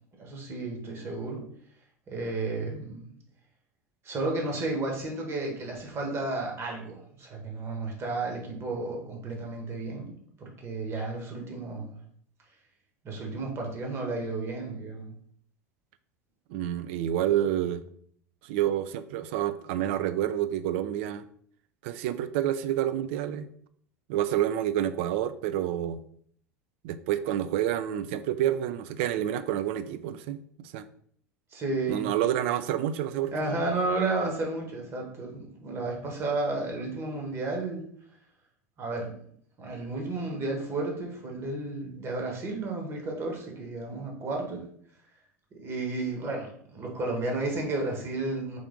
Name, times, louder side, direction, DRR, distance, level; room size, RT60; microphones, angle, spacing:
voice 1, 0.2-1.4 2.1-3.2 4.0-12.0 13.0-15.1 31.5-32.1 33.3-37.8 38.8-39.1 39.6-44.6 45.5-48.6, right 2 dB, 30° right, 1 dB, 1.2 m, -32 dB
voice 2, 16.5-17.8 18.4-21.2 21.8-23.5 24.1-26.0 26.8-30.8 31.9-33.3, right 11 dB, 50° right, 12 dB, 0.3 m, -28 dB
3.4 x 3.4 x 3.6 m, 0.62 s
figure-of-eight pair, 80°, 8 cm